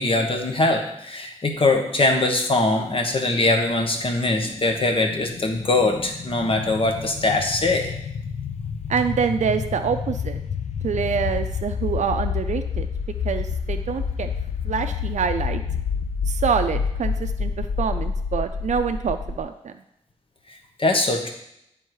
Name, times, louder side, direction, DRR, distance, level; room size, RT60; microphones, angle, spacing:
voice 1, 0.0-7.9 20.8-21.3, left 2 dB, 45° left, 3 dB, 1.2 m, -22 dB
sound 1, 3.9-19.4, left 6 dB, 70° left, 0.5 m, -29 dB
voice 2, 8.9-10.4 10.8-12.9 13.2-14.3 14.7-15.6 16.3-17.5 17.8-19.7, right 6 dB, 75° right, 7 dB, 0.4 m, -25 dB
9.6 x 3.6 x 4.7 m, 0.78 s
wide cardioid pair, 90°, 12 cm